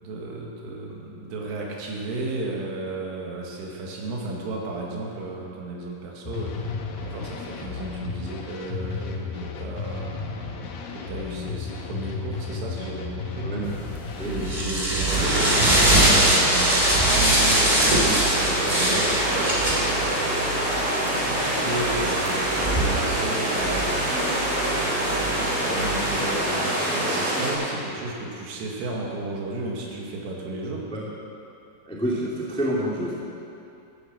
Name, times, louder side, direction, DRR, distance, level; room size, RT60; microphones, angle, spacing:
voice 1, 0.0-10.1 10.9-13.5 14.2-17.7 18.3-20.7 21.1-24.2 24.7-30.9, right 2 dB, 85° right, -2 dB, 4.5 m, -33 dB
sound 1, 6.2-14.8, left 5 dB, 70° left, 2.8 m, -33 dB
sound 2, 13.7-26.2, right 1 dB, 15° right, 1.6 m, -24 dB
sound 3, 15.1-27.5, right 1 dB, 45° right, 5.4 m, -25 dB
voice 2, 31.9-33.1, equal, 5° left, -5 dB, 0.7 m, -27 dB
14.0 x 10.5 x 7.8 m, 2.6 s
omnidirectional pair, 5.6 m